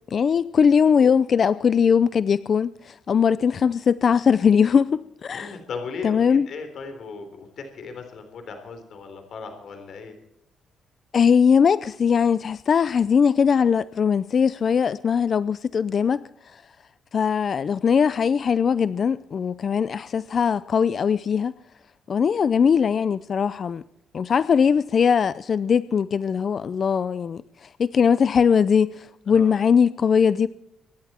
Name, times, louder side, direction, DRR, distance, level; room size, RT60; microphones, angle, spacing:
voice 1, 0.1-5.6 6.0-6.5 11.1-16.6 17.1-21.5 22.1-23.8 24.1-30.5, left 6 dB, 50° left, 0.5 m, -20 dB
voice 2, 5.3-10.2 29.3-29.7, left 5 dB, 65° left, 3.6 m, -37 dB
25.0 x 11.0 x 4.4 m
cardioid pair, 90°, 0 cm